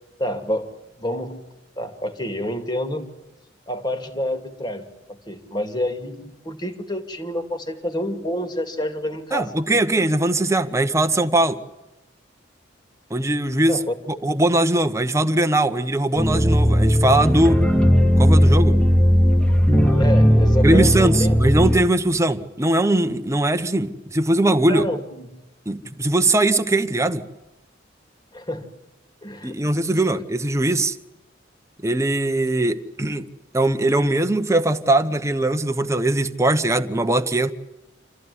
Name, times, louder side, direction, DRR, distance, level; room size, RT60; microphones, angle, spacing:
voice 1, 0.2-0.7 1.0-1.4 1.8-3.0 3.7-9.5 13.7-13.9 20.0-21.4 24.7-25.3 28.3-28.7 29.2-29.6, equal, 25° left, 2.2 m, -28 dB
voice 2, 9.3-11.6 13.1-13.8 14.1-17.6 18.2-18.8 20.6-24.9 25.7-27.2 29.4-31.0 31.8-33.3 33.5-37.5, right 1 dB, 15° right, 0.9 m, -20 dB
sound 1, 16.2-21.8, equal, 5° left, 1.8 m, -16 dB
27.0 x 14.5 x 9.8 m
head